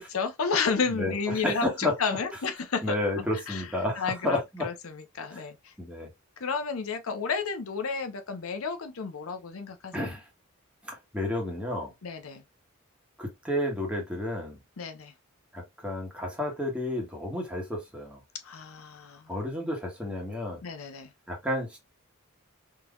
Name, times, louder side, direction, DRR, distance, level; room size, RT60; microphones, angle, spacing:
voice 1, 0.0-3.7 4.0-5.7 6.4-10.1 12.0-12.4 14.8-15.1 18.4-19.3 20.6-21.1, left 5 dB, 70° left, 0.6 m, -32 dB
voice 2, 0.9-1.9 2.8-4.7 5.3-5.4 5.8-6.1 9.9-10.2 10.8-11.9 13.2-14.6 15.5-18.2 19.3-20.6 21.3-21.8, left 1 dB, 5° right, 1.3 m, -31 dB
3.7 x 3.0 x 2.3 m
head